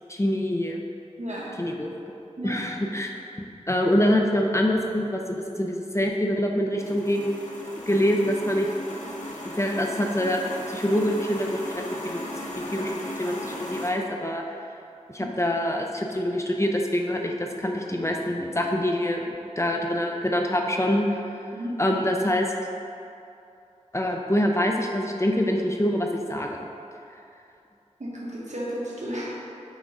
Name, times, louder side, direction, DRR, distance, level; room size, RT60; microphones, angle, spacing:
voice 1, 0.1-0.8 1.6-1.9 2.4-3.1 3.7-7.4 7.9-8.7 9.4-12.2 12.6-14.4 15.1-19.2 19.6-21.1 21.8-22.5 23.9-26.6, equal, 20° left, 1 dB, 0.6 m, -25 dB
voice 2, 1.2-1.5 2.4-2.6 15.2-15.3 21.5-21.7 28.0-29.3, equal, 70° right, -6 dB, 1.5 m, -33 dB
sound 1, 6.8-13.9, left 1 dB, 85° left, 0.9 m, -36 dB
8.1 x 3.8 x 4.8 m, 2.7 s
wide cardioid pair, 60°, 13 cm